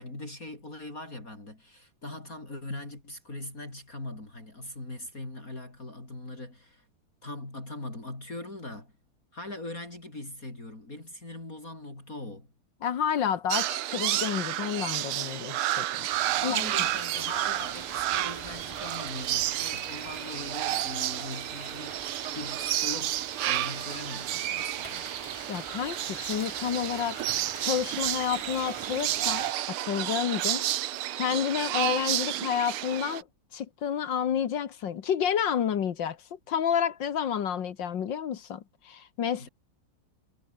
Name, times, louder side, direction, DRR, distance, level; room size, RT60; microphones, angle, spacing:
voice 1, 0.0-6.9 7.2-8.9 9.3-12.5 16.2-25.0 39.4-39.5, left 2 dB, 40° left, 6.4 m, -41 dB
voice 2, 12.8-16.1 16.4-16.6 25.5-27.2 27.6-30.6 31.2-33.3 33.5-39.5, left 8 dB, 60° left, 1.9 m, -30 dB
sound 1, 13.5-33.2, right 14 dB, 85° right, 1.8 m, -31 dB
sound 2, 16.1-29.5, right 1 dB, 10° right, 6.5 m, -46 dB
omnidirectional pair, 2.3 m